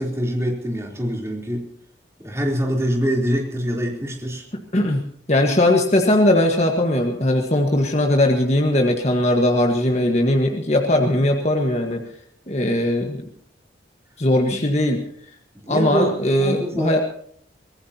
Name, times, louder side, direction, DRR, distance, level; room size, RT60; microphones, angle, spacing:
voice 1, 0.0-1.6 2.2-4.4 14.5-14.6 15.6-17.0, equal, 15° right, 0 dB, 3.6 m, -25 dB
voice 2, 5.3-12.0 12.5-13.2 14.2-15.0 15.7-17.0, left 1 dB, 35° left, 3 dB, 1.6 m, -19 dB
24.5 x 17.0 x 2.9 m, 0.63 s
head